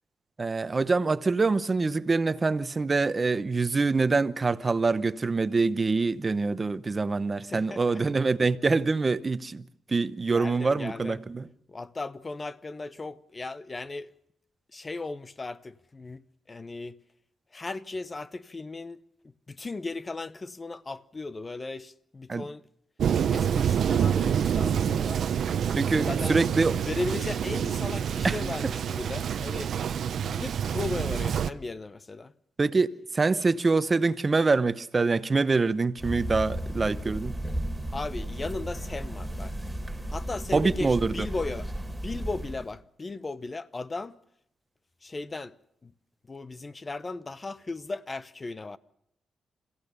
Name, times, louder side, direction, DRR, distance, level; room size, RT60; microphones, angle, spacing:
voice 1, 0.4-11.5 22.3-22.4 25.8-26.8 28.2-28.4 32.6-32.9 33.1-37.4 40.5-41.1, right 3 dB, 35° right, 0.9 m, -25 dB
voice 2, 7.5-8.0 10.3-11.2 11.7-14.1 14.7-17.0 17.5-19.0 19.5-22.6 23.3-25.2 26.0-26.4 26.8-29.7 30.2-32.3 37.9-39.5 40.1-41.7 42.0-44.2 45.0-45.6 45.8-45.9 46.3-48.8, left 3 dB, 35° left, 0.8 m, -36 dB
Thunder, 23.0-31.5, right 8 dB, 70° right, 0.8 m, -27 dB
sound 1, 36.0-42.7, right 1 dB, ahead, 3.6 m, -34 dB
28.0 x 16.0 x 6.8 m
cardioid pair, 70°, 0 cm